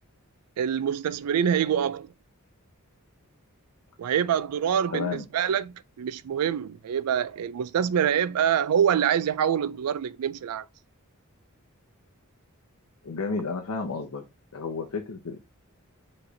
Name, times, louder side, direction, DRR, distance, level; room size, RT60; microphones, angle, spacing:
voice 1, 0.6-2.1 4.0-10.7, right 8 dB, 85° right, 0.4 m, -25 dB
voice 2, 4.9-5.2 13.0-14.2 14.5-15.4, left 4 dB, 75° left, 0.7 m, -31 dB
4.8 x 3.2 x 2.7 m
head